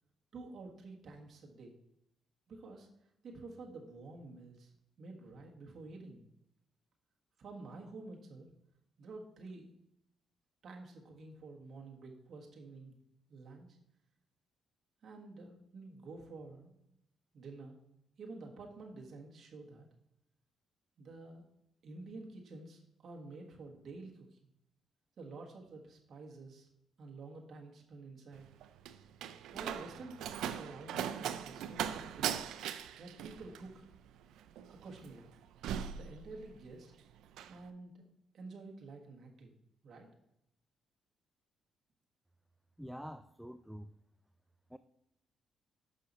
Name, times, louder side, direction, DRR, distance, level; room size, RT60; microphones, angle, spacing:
voice 1, 0.3-1.7 2.5-2.9 3.2-4.7 5.0-6.2 7.4-8.5 9.0-9.7 10.6-12.9 13.3-13.8 15.0-16.7 17.3-17.8 18.2-19.9 21.0-21.4 21.8-24.5 25.2-26.7 27.0-28.4 29.5-32.4 33.0-33.9 34.7-35.2 35.9-36.9 37.5-38.0 38.3-39.5 39.8-40.1, right 3 dB, 55° right, 0 dB, 1.5 m, -50 dB
Slam, 28.3-36.8 37.1-37.6, right 9 dB, 85° right, 0.4 m, -40 dB
voice 2, 42.8-43.9 44.7-44.8, equal, ahead, 11 dB, 0.3 m, -46 dB
6.5 x 5.6 x 4.1 m, 0.81 s
cardioid pair, 90°, 0 cm